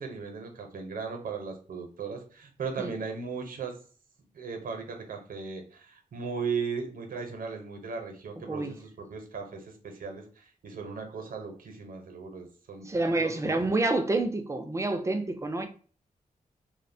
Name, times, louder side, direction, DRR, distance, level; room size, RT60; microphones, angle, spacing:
voice 1, 0.0-3.8 4.3-13.6, right 5 dB, 85° right, 0.6 m, -37 dB
voice 2, 12.8-15.7, right 2 dB, 20° right, 0.4 m, -28 dB
2.7 x 2.1 x 2.6 m
wide cardioid pair, 95°, 14 cm